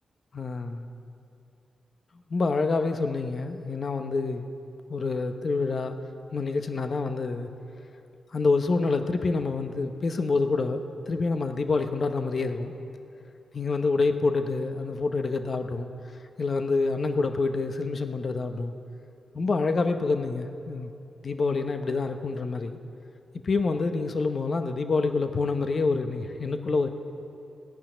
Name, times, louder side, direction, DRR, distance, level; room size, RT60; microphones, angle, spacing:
voice 1, 0.3-0.9 2.3-4.5 4.9-6.0 6.3-7.5 8.3-12.7 13.5-15.9 16.4-18.7 19.3-20.9 21.2-22.8 23.4-26.9, left 3 dB, 50° left, 7 dB, 0.9 m, -27 dB
17.0 x 5.9 x 9.9 m, 2.6 s
cardioid pair, 55°, 0 cm